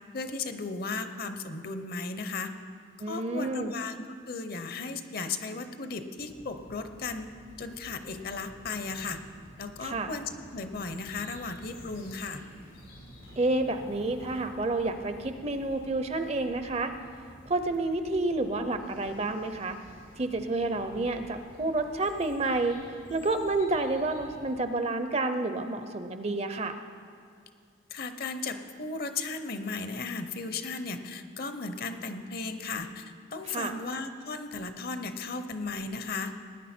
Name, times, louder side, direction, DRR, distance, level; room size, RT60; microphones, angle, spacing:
voice 1, 0.1-2.5 3.1-4.0 4.3-7.3 7.6-9.2 9.6-12.4 27.9-36.3, left 4 dB, 50° left, 8 dB, 0.8 m, -35 dB
voice 2, 3.0-3.7 9.8-10.1 13.4-16.9 17.5-19.8 20.2-22.8 23.1-26.8 33.4-33.7, right 2 dB, 30° right, 9 dB, 0.6 m, -29 dB
sound 1, 6.2-24.6, equal, 85° left, 4.0 m, -51 dB
19.0 x 9.8 x 4.4 m, 2.2 s
head